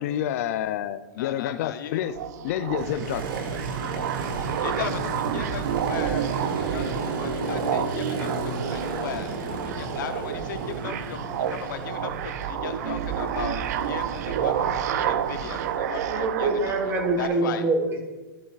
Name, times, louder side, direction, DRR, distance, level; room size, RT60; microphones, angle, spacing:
voice 1, 0.0-2.1 2.4-3.3, left 11 dB, 45° left, 0.4 m, -28 dB
voice 2, 1.2-2.0 3.7-4.3 4.6-9.3 9.6-16.8 17.2-17.6, left 8 dB, 65° left, 0.8 m, -37 dB
sound 1, 2.0-17.3, right 10 dB, 50° right, 0.5 m, -30 dB
Motorcycle, 2.8-15.8, right 3 dB, 75° right, 1.7 m, -33 dB
voice 3, 16.0-18.1, right 3 dB, 20° right, 1.3 m, -25 dB
13.5 x 7.3 x 2.4 m
supercardioid pair, 165°, 11 cm